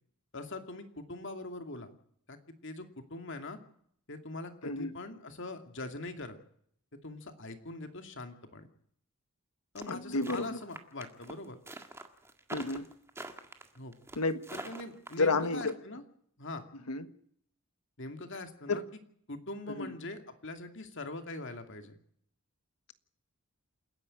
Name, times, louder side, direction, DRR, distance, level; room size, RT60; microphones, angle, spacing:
voice 1, 0.3-1.9 2.3-2.4 2.6-3.6 4.1-6.4 7.0-8.7 9.7-11.6 13.7-13.9 14.5-16.0 16.4-16.6 18.0-18.8 19.3-22.0, left 2 dB, 55° left, 7 dB, 2.5 m, -42 dB
voice 2, 4.6-4.9 9.9-10.6 12.5-12.9 14.1-14.4 15.2-15.8 16.9-17.1 18.7-18.8 19.7-19.9, left 3 dB, 90° left, 11 dB, 1.5 m, -31 dB
sound 1, 9.8-15.7, right 2 dB, 10° right, 1.7 m, -44 dB
28.5 x 10.5 x 8.9 m, 0.67 s
head